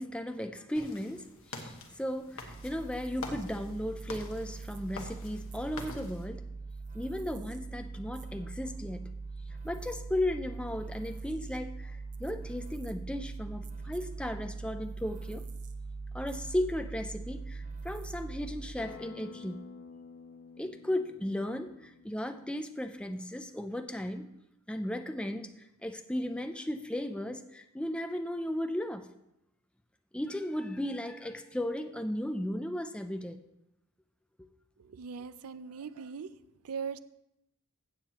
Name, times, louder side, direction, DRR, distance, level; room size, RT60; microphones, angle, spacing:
voice 1, 0.0-6.5 6.9-9.1 9.6-15.4 16.1-19.7 20.6-24.3 24.7-25.5 25.8-29.1 30.1-33.4 34.4-34.5, left 1 dB, 5° left, 7 dB, 0.5 m, -35 dB
sound 1, 0.7-6.3, left 3 dB, 65° left, 1.3 m, -46 dB
sound 2, 2.4-19.0, right 3 dB, 35° right, 0.7 m, -42 dB
Acoustic guitar, 18.8-24.0, left 4 dB, 90° left, 1.1 m, -51 dB
voice 2, 34.8-36.3 36.6-37.0, right 6 dB, 85° right, 14 dB, 0.5 m, -40 dB
16.0 x 7.3 x 3.0 m, 0.85 s
head